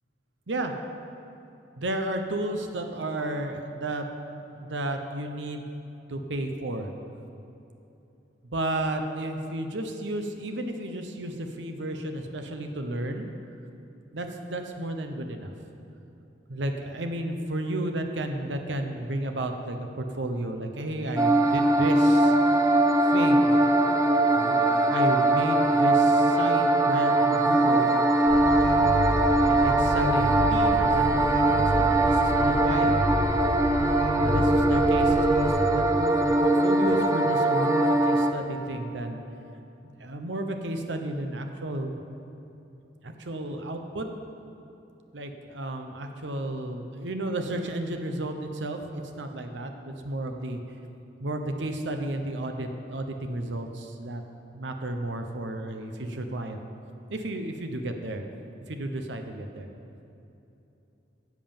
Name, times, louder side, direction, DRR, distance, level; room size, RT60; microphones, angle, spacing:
voice 1, 1.8-4.1 4.4-5.7 6.1-6.9 8.4-13.3 14.1-15.5 16.5-22.4 23.0-23.6 24.4-28.0 29.4-33.0 34.2-39.2 40.0-42.0 43.0-44.1 45.1-50.6 51.2-54.2 54.5-56.6 57.1-58.2 58.7-59.7, right 1 dB, 85° right, 5 dB, 0.9 m, -32 dB
sound 1, 21.2-38.3, right 2 dB, 15° right, 0.5 m, -21 dB
sound 2, 28.3-35.5, left 1 dB, 65° left, 1.7 m, -29 dB
11.0 x 7.6 x 7.1 m, 2.9 s
head